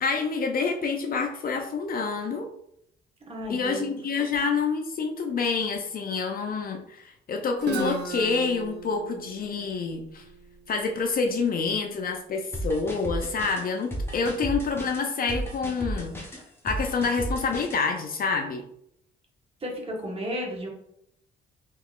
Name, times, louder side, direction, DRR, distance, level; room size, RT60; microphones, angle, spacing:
voice 1, 0.0-2.5 3.5-10.2 10.7-18.6, left 4 dB, 45° left, 4 dB, 0.5 m, -27 dB
voice 2, 3.3-4.0 19.6-20.7, equal, 30° right, -1 dB, 1.1 m, -33 dB
Guitar, 7.6-11.4, right 4 dB, 60° right, 0.7 m, -37 dB
sound 1, 12.5-17.8, right 1 dB, 10° left, 0.9 m, -33 dB
3.7 x 2.9 x 2.4 m, 0.73 s
cardioid pair, 90°, 20 cm